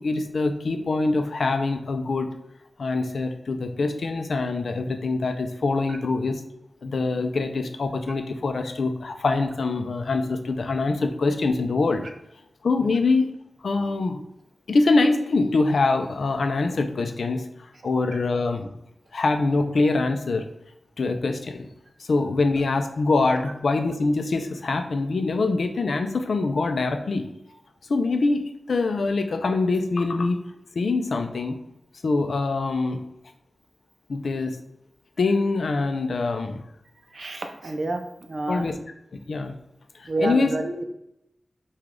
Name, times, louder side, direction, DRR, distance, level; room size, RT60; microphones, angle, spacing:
voice 1, 0.0-2.3 2.8-6.4 6.8-12.0 12.6-13.3 13.6-14.2 14.7-17.5 17.8-18.7 19.1-20.4 21.0-21.7 22.0-27.3 27.9-30.4 30.8-31.6 32.0-33.0 34.1-34.6 35.2-36.6 38.5-38.7 39.3-39.5 40.0-40.5, left 3 dB, 85° left, 6 dB, 0.4 m, -24 dB
voice 2, 37.1-38.6 40.1-40.8, right 2 dB, 55° right, 5 dB, 0.5 m, -29 dB
4.9 x 2.3 x 3.7 m, 0.84 s
wide cardioid pair, 100°, 0 cm